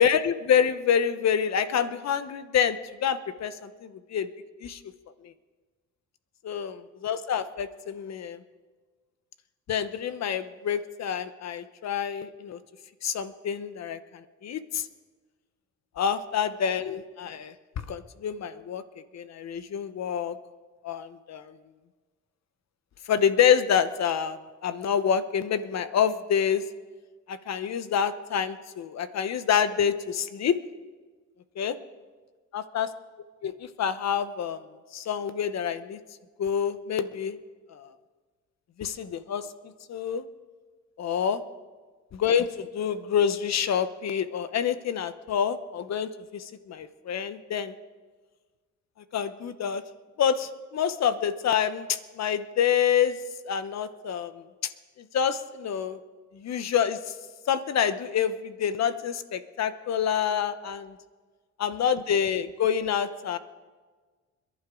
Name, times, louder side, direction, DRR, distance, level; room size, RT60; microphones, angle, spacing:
voice 1, 0.0-4.3 4.6-4.8 6.4-8.4 9.7-12.6 13.0-14.0 14.4-14.8 16.0-18.8 19.1-20.4 20.8-21.5 23.1-24.4 24.6-26.6 27.3-30.6 31.6-31.8 32.5-32.9 33.4-34.6 34.9-36.0 36.4-37.3 37.7-37.9 38.8-39.4 39.9-40.2 41.0-41.4 42.1-47.7 49.1-49.8 50.2-53.2 53.4-54.4 55.1-56.0 56.3-57.0 57.5-60.9 61.6-63.4, left 8 dB, 60° left, 12 dB, 1.0 m, -27 dB
26.5 x 11.0 x 3.9 m, 1.4 s
cardioid pair, 90°, 30 cm